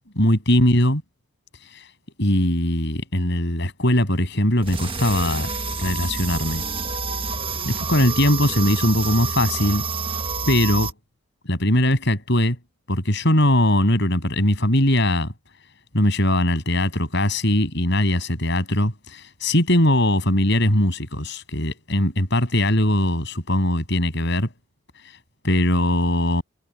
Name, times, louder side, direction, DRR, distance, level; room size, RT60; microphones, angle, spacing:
voice 1, 0.2-1.0 2.2-5.5 5.8-6.6 7.7-9.8 10.5-10.9 11.5-12.6 12.9-15.3 15.9-24.5 25.4-26.4, left 1 dB, 55° left, 7.8 m, -20 dB
sound 1, 4.6-10.9, right 4 dB, 25° right, 1.5 m, -28 dB
head